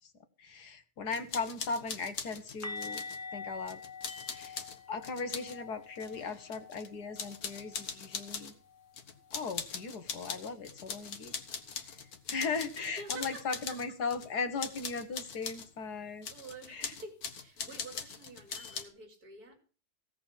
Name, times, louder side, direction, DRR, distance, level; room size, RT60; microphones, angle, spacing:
voice 1, 0.4-3.0 3.3-3.8 4.3-4.6 4.9-8.5 9.3-11.3 12.3-16.3 16.7-16.9, left 4 dB, 85° left, 2.0 m, -37 dB
sound 1, 1.1-3.2 3.7-5.6 6.0-6.9 7.2-8.5 8.9-14.3 14.6-15.7 16.2-18.8, left 6 dB, 70° left, 1.9 m, -42 dB
sound 2, 2.6-8.4 8.7-8.9 9.2-9.4 12.6-12.7, left 4 dB, 15° left, 0.7 m, -46 dB
voice 2, 12.8-13.8 16.3-19.6, right 3 dB, 75° right, 3.3 m, -48 dB
16.5 x 6.4 x 7.4 m
omnidirectional pair, 1.7 m